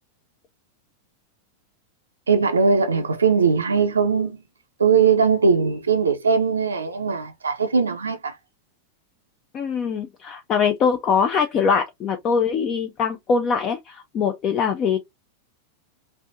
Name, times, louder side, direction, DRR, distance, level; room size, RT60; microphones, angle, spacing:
voice 1, 2.3-4.4 4.8-8.4, right 5 dB, 75° right, 0.5 m, -20 dB
voice 2, 9.5-15.0, left 6 dB, 30° left, 0.5 m, -22 dB
3.3 x 2.6 x 2.6 m
figure-of-eight pair, 90°, 0 cm